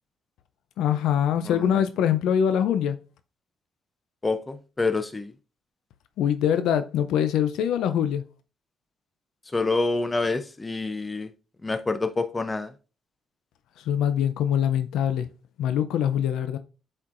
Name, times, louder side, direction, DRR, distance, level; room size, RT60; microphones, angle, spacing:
voice 1, 0.8-3.0 6.2-8.2 13.9-15.3 15.6-16.6, left 9 dB, 85° left, 0.5 m, -23 dB
voice 2, 1.4-1.8 4.2-5.3 9.5-11.3 11.6-12.7, left 3 dB, 20° left, 0.6 m, -27 dB
8.4 x 4.4 x 2.5 m
cardioid pair, 90°, 0 cm